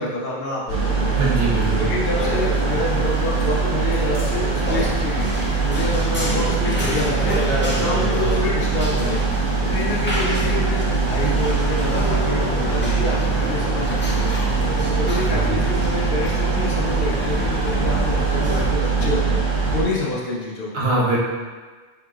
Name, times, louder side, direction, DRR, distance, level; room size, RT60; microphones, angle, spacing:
voice 1, 0.0-1.2 1.8-5.3 5.6-14.3 14.7-20.7, left 2 dB, 65° left, -4 dB, 1.0 m, -27 dB
sound 1, 0.7-19.8, right 4 dB, 50° right, 1.0 m, -22 dB
voice 2, 1.2-1.9 15.3-15.6 20.7-21.2, right 2 dB, 75° right, -4 dB, 1.1 m, -22 dB
sound 2, 2.1-18.6, equal, 15° left, 0.6 m, -30 dB
5.7 x 3.0 x 2.4 m, 1.4 s
omnidirectional pair, 1.0 m